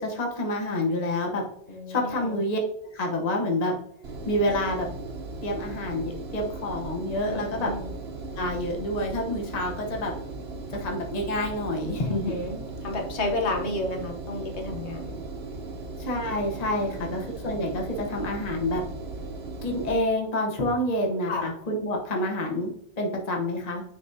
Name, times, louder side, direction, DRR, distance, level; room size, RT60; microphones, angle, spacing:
voice 1, 0.0-1.4 1.9-2.6 2.9-3.7 4.3-4.9 5.4-7.7 8.3-10.1 10.7-12.4 16.0-18.8 19.6-22.7 23.0-23.8, left 1 dB, 40° left, 1 dB, 1.0 m, -28 dB
voice 2, 1.7-2.4 7.2-7.9 12.1-15.2 16.8-17.2 21.3-21.5, left 2 dB, 75° left, 1 dB, 1.3 m, -32 dB
Engine, 4.0-19.9, right 3 dB, 65° right, 1.1 m, -37 dB
10.0 x 3.4 x 2.7 m, 0.73 s
omnidirectional pair, 1.2 m